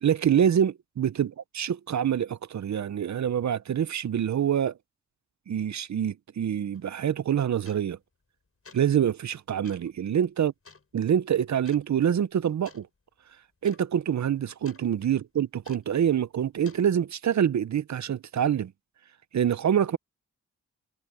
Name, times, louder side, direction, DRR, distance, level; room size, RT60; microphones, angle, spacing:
voice 1, 0.0-4.7 5.5-8.0 8.7-10.5 10.9-12.9 13.6-18.7 19.3-20.0, right 9 dB, 70° right, 0.6 m, -26 dB
sound 1, 6.7-6.9 7.6-8.0 8.5-8.9 9.6-9.9 10.6-10.9 11.6-11.9 12.6-12.9 13.2-13.3 13.6-13.9 14.1-14.9 15.6-16.0 16.6-16.9, left 4 dB, 50° left, 8.0 m, -52 dB
wide cardioid pair, 85°, 30 cm